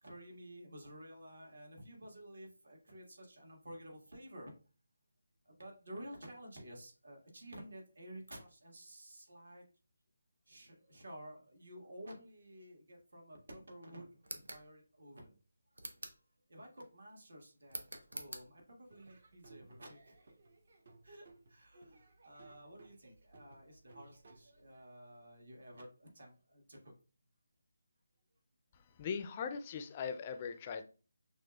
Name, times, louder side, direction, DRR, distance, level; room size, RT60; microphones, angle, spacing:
voice 1, 0.0-4.5 5.4-9.6 10.5-15.4 16.5-20.2 21.0-26.9, equal, 75° right, 0 dB, 1.6 m, -52 dB
sound 1, 14.2-14.7 15.7-16.2 17.7-18.5, right 2 dB, 90° right, 0.8 m, -46 dB
Laughter / Drum, 18.9-24.8, right 3 dB, 55° right, 0.8 m, -62 dB
voice 2, 28.7-30.8, left 6 dB, 25° left, 7 dB, 0.3 m, -40 dB
6.1 x 2.4 x 2.3 m, 0.35 s
figure-of-eight pair, 165°, 0 cm